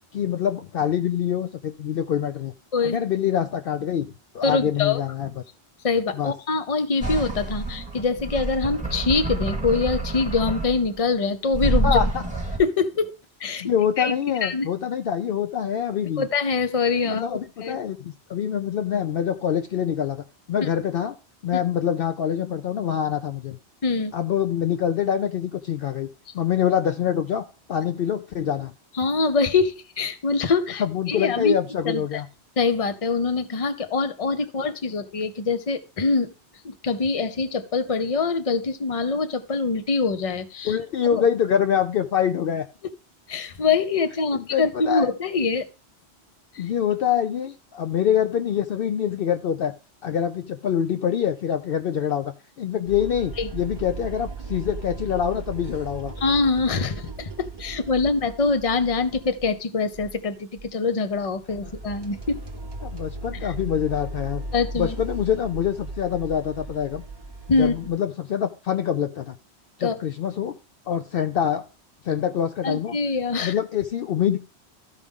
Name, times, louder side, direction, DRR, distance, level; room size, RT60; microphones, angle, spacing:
voice 1, 0.1-2.5 2.8-5.4 6.1-6.3 11.8-12.2 13.6-16.2 17.0-21.2 21.4-23.6 24.1-26.1 26.3-28.7 30.8-32.3 40.6-42.6 44.3-45.1 46.6-49.7 50.0-56.1 62.8-64.4 64.7-67.0 67.6-69.4 69.8-70.6 70.9-71.6 72.0-73.0 73.4-74.4, left 9 dB, 65° left, 9 dB, 0.7 m, -25 dB
voice 2, 4.4-5.0 5.8-12.0 12.6-13.1 13.4-13.7 14.0-14.1 14.4-14.7 16.2-17.8 20.6-20.7 21.5-21.6 23.8-24.1 28.9-30.8 31.1-31.6 31.8-32.2 32.6-36.3 36.6-40.8 41.1-41.2 43.3-45.6 46.5-46.6 53.4-53.5 56.2-62.4 63.4-63.5 64.5-65.0 67.5-67.7 69.8-69.9 72.6-73.5, left 4 dB, 35° left, 10 dB, 0.8 m, -24 dB
sound 1, 7.0-11.0 11.5-12.6, right 2 dB, 5° right, 2.0 m, -27 dB
sound 2, 52.9-59.6 59.9-60.2 60.6-60.7 61.1-67.9, right 2 dB, 25° right, 0.8 m, -37 dB
14.0 x 5.0 x 3.6 m, 0.34 s
omnidirectional pair, 1.1 m